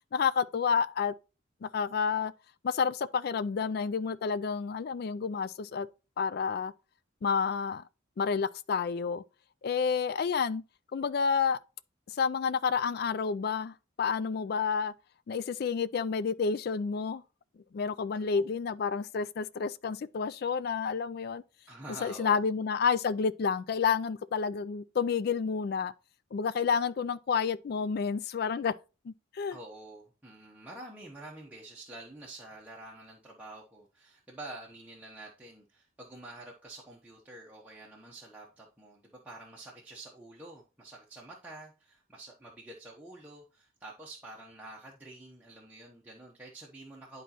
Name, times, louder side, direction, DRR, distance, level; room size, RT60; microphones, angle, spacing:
voice 1, 0.1-1.1 1.6-2.3 2.6-5.9 6.2-6.7 7.2-7.8 8.2-9.2 9.6-10.6 10.9-11.6 12.1-14.9 15.3-17.2 17.7-21.4 22.0-25.9 26.3-28.7 29.0-29.6, left 6 dB, 50° left, 0.3 m, -30 dB
voice 2, 21.7-22.4 29.5-47.2, right 2 dB, 10° right, 0.9 m, -48 dB
10.0 x 4.1 x 2.9 m
head